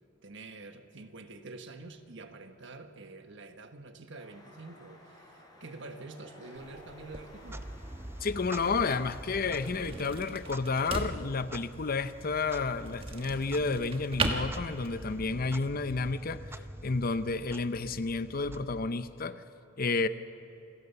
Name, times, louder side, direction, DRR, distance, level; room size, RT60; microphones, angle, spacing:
voice 1, 0.2-7.7 15.0-15.5, right 3 dB, 65° right, 7 dB, 1.4 m, -47 dB
sound 1, 4.1-15.2, left 1 dB, 20° left, 4.4 m, -57 dB
sound 2, 6.6-15.3, right 2 dB, 30° right, 1.4 m, -38 dB
Clock, 7.3-19.3, right 1 dB, 10° right, 0.6 m, -46 dB
voice 2, 8.2-19.4 19.8-20.1, left 4 dB, 50° left, 12 dB, 0.7 m, -31 dB
27.5 x 16.5 x 7.0 m, 2.8 s
head